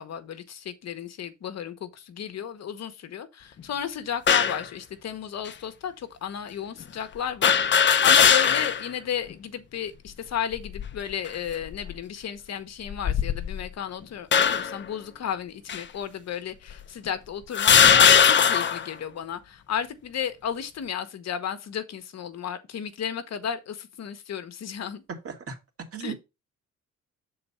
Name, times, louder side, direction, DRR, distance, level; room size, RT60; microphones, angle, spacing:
voice 1, 0.0-25.0 26.0-26.1, left 8 dB, 60° left, 1.1 m, -34 dB
sound 1, 4.3-4.6 5.5-5.6 7.4-8.9 9.3-9.4 10.5-11.0 11.7-11.9 12.9-13.7 14.3-14.8 15.7-15.8 16.7-16.8 17.5-18.9, left 7 dB, 40° left, 0.7 m, -19 dB
voice 2, 25.2-25.6 25.9-26.1, right 7 dB, 50° right, 2.2 m, -35 dB
6.8 x 4.0 x 5.5 m
cardioid pair, 90°, 30 cm